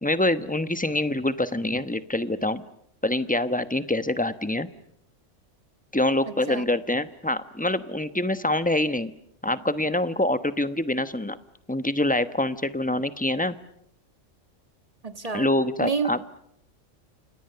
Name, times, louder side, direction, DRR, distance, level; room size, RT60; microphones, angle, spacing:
voice 1, 0.0-2.6 3.0-4.7 5.9-9.1 9.4-11.4 11.7-13.5 15.3-16.2, left 1 dB, 5° left, 12 dB, 0.9 m, -25 dB
voice 2, 6.3-6.6 15.0-15.5 15.8-16.1, right 5 dB, 30° right, 10 dB, 1.6 m, -29 dB
29.5 x 27.5 x 6.9 m, 0.74 s
omnidirectional pair, 1.3 m